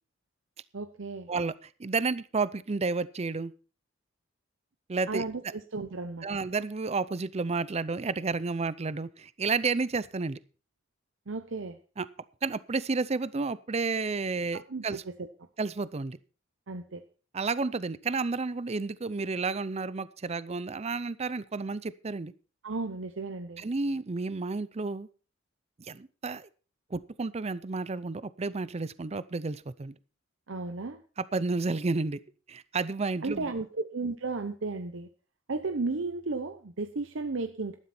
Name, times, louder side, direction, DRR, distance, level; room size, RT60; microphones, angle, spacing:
voice 1, 0.7-1.3 5.1-6.4 11.3-11.8 14.7-15.3 16.7-17.0 22.6-23.6 30.5-31.0 33.2-35.1 35.5-37.8, right 3 dB, 70° right, 8 dB, 0.8 m, -34 dB
voice 2, 1.3-3.5 4.9-5.2 6.2-10.4 12.0-12.1 12.4-15.0 15.6-16.2 17.3-22.3 23.6-25.1 25.9-26.5 26.9-29.9 31.3-32.2 32.5-33.5, right 4 dB, 30° right, 17 dB, 0.5 m, -31 dB
13.0 x 11.5 x 4.3 m, 0.36 s
head